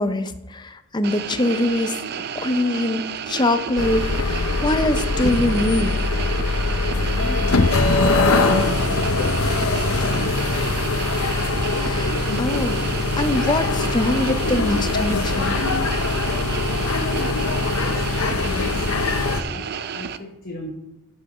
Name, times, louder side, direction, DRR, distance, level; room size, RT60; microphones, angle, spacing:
voice 1, 0.0-2.0 2.3-5.9 11.7-12.8 13.2-15.6, left 1 dB, 20° left, 10 dB, 0.6 m, -23 dB
sound 1, 1.0-20.2, right 7 dB, 45° right, 0.4 m, -31 dB
sound 2, 3.8-19.4, left 3 dB, 75° left, 0.8 m, -22 dB
voice 2, 6.9-8.8 9.2-10.9 16.6-20.7, left 1 dB, 40° left, 1 dB, 1.0 m, -36 dB
sound 3, 8.4-13.0, equal, ahead, 3.5 m, -39 dB
12.0 x 5.9 x 4.9 m, 0.93 s
head